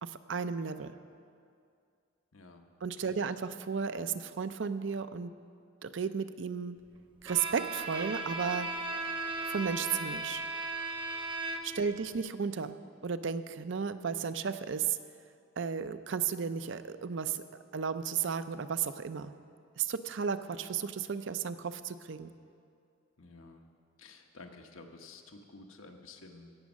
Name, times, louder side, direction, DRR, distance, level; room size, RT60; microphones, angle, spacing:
voice 1, 0.0-0.9 2.8-5.3 5.8-6.8 7.2-8.7 9.5-10.4 11.6-12.8 13.0-15.0 15.6-17.4 17.7-19.3 19.8-22.3, right 6 dB, 65° right, 11 dB, 0.5 m, -34 dB
voice 2, 2.3-2.6 23.2-23.7 24.0-26.6, left 3 dB, 90° left, 4 dB, 1.1 m, -52 dB
Bowed string instrument, 7.3-11.9, right 3 dB, 25° right, 0.8 m, -36 dB
17.0 x 6.3 x 7.3 m, 2.4 s
head